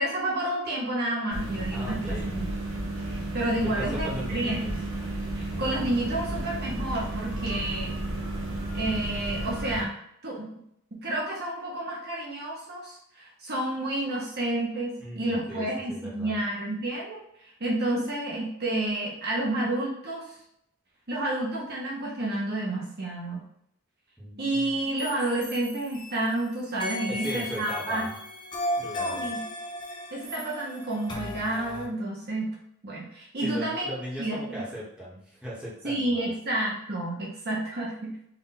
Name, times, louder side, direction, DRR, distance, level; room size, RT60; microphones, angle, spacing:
voice 1, 0.0-2.5 3.3-4.8 5.3-7.9 8.7-9.9 10.2-10.5 10.9-17.2 17.6-20.3 21.1-23.4 24.4-28.0 29.0-29.4 30.1-32.5 32.8-33.9 34.2-34.6 35.8-38.1, right 1 dB, 45° right, -3 dB, 0.9 m, -30 dB
sound 1, 1.3-9.8, right 1 dB, 60° right, 1.2 m, -32 dB
voice 2, 1.7-2.3 3.8-4.7 15.0-16.3 24.2-24.7 27.1-28.2 28.8-29.3 33.4-36.3, equal, 5° right, -7 dB, 1.3 m, -38 dB
sound 2, 25.0-26.4 26.8-31.9, left 1 dB, 20° left, 0.8 m, -35 dB
4.3 x 2.5 x 4.0 m, 0.73 s
head